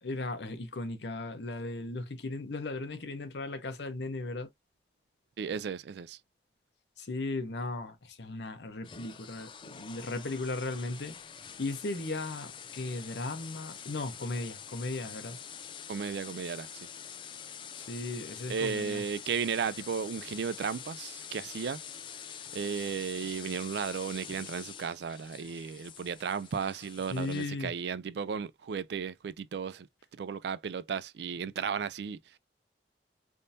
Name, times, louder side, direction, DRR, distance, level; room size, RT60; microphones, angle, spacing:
voice 1, 0.0-4.5 7.0-11.2 11.6-15.4 17.8-19.0 27.1-27.7, left 2 dB, 80° left, 0.8 m, -36 dB
voice 2, 5.4-6.2 15.9-16.7 18.5-21.8 22.5-29.9 30.2-32.4, right 6 dB, 75° right, 0.3 m, -34 dB
sound 1, 8.8-27.5, left 8 dB, 30° left, 0.3 m, -46 dB
3.5 x 2.6 x 2.6 m
head